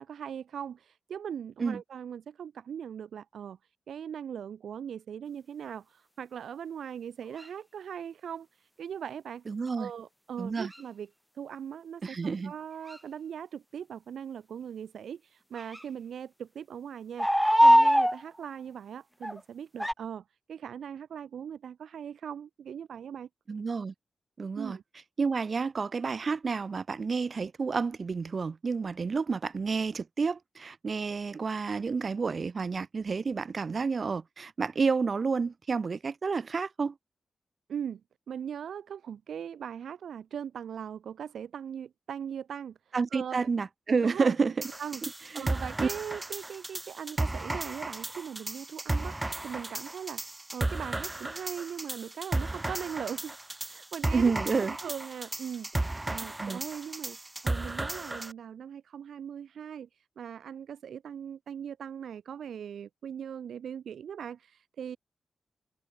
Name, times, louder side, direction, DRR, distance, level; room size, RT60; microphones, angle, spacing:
voice 1, 0.0-9.5 9.8-11.1 11.3-17.3 17.6-23.3 24.6-24.8 37.7-38.0 38.3-43.5 44.0-44.4 44.8-53.4 53.7-54.3 54.6-57.2 57.4-65.0, right 8 dB, 85° right, 3.2 m, -40 dB
sound 1, 7.4-7.5 10.7-10.8 12.9-13.0 15.6-15.8 17.2-18.2 19.2-19.4 19.8-19.9, equal, ahead, 0.6 m, -21 dB
voice 2, 9.5-9.9 10.4-10.7 12.0-12.5 23.5-23.9 24.4-24.8 25.2-36.9 42.9-44.5 45.3-45.5 45.8-45.9 54.1-54.7 56.4-56.6, right 5 dB, 60° right, 0.8 m, -30 dB
sound 2, 44.6-58.3, right 2 dB, 25° right, 3.1 m, -34 dB
open air
supercardioid pair, 45°, 0 cm